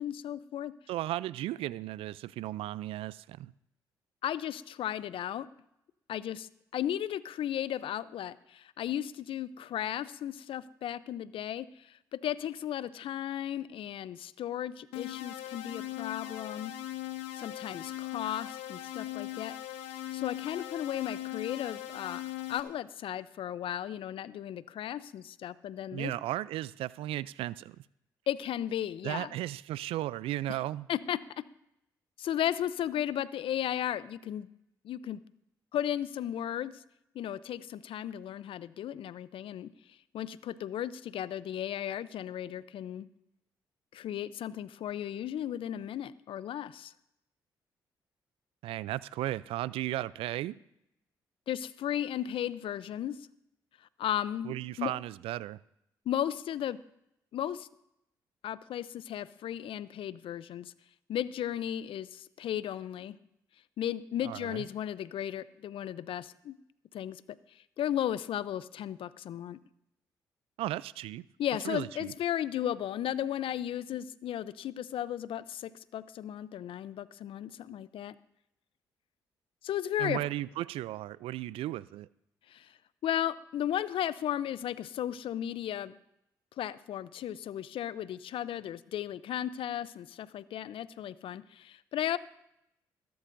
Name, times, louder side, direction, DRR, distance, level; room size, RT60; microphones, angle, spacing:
voice 1, 0.0-0.7 4.2-5.5 6.1-16.7 17.4-19.5 20.1-22.2 22.5-26.1 28.3-29.4 30.5-30.6 30.9-31.2 32.2-34.5 34.8-35.2 35.7-36.8 37.1-39.7 40.1-43.1 43.9-46.9 51.5-53.3 54.0-54.9 56.1-56.8 57.3-57.7 58.4-60.7 61.1-63.2 63.8-66.6 66.9-67.2 67.5-69.6 71.4-78.1 79.6-80.2 82.5-86.0 86.6-92.2, left 11 dB, 65° left, 17 dB, 0.6 m, -35 dB
voice 2, 0.9-3.5 25.9-27.8 29.0-30.9 48.6-50.5 54.4-55.6 64.2-64.6 70.6-71.2 71.6-72.1 80.0-82.1, right 14 dB, 70° right, 20 dB, 0.4 m, -35 dB
sound 1, 14.9-22.6, left 14 dB, 80° left, 1.1 m, -40 dB
21.0 x 11.5 x 2.6 m, 0.81 s
hypercardioid pair, 45°, 10 cm